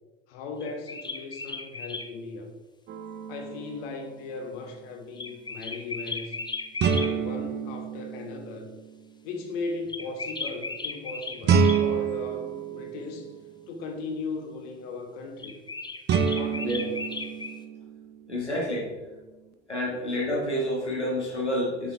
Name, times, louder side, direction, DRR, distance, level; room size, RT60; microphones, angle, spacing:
voice 1, 0.3-2.5 3.3-6.4 6.9-8.7 9.2-13.3 13.7-15.6 16.3-17.1, left 3 dB, 55° left, 3 dB, 1.4 m, -37 dB
sound 1, 0.6-2.1 5.2-7.1 9.9-11.8 15.4-17.6, left 3 dB, 15° left, 0.8 m, -36 dB
sound 2, 2.9-3.8 6.8-9.0 11.4-13.6 16.1-18.3, right 6 dB, 30° right, 0.6 m, -28 dB
voice 2, 18.3-18.9 19.7-21.9, equal, 90° left, -4 dB, 1.9 m, -29 dB
7.1 x 6.1 x 3.4 m, 1.2 s
figure-of-eight pair, 70°, 33 cm